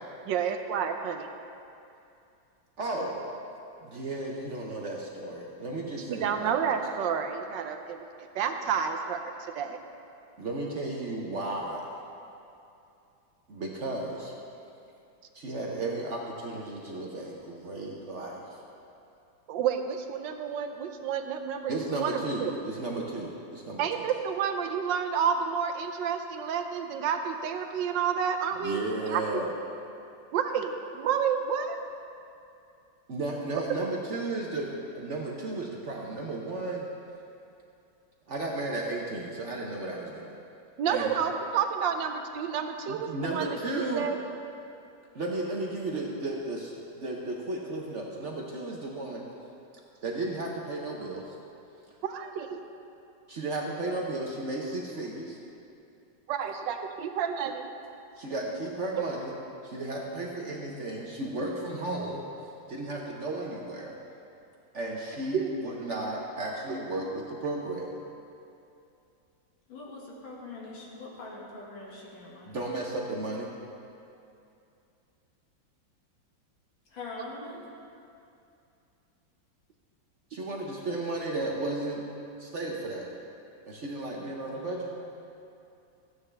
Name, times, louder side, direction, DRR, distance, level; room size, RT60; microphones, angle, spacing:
voice 1, 0.3-1.3 6.1-9.2 9.5-9.8 19.5-22.5 23.8-28.8 29.1-29.2 30.3-31.8 40.8-44.2 52.0-52.6 56.3-57.7 65.3-65.5 66.7-66.8, right 7 dB, 75° right, 6 dB, 1.2 m, -30 dB
voice 2, 2.8-3.3 3.8-6.8 10.4-11.9 13.5-14.3 15.3-18.6 21.7-24.0 28.6-29.5 33.1-36.9 38.3-40.4 40.9-41.1 42.9-44.1 45.1-49.3 50.0-51.3 53.3-55.4 58.2-59.3 59.6-62.3 62.7-64.0 64.7-68.0 72.4-73.5 80.3-82.1 82.4-83.1 83.7-84.9, right 2 dB, 50° right, -1 dB, 0.9 m, -34 dB
voice 3, 69.7-72.6 76.9-77.7 81.4-81.6 84.6-85.1, left 3 dB, 85° left, -4 dB, 2.6 m, -43 dB
14.5 x 9.1 x 3.3 m, 2.6 s
omnidirectional pair, 2.1 m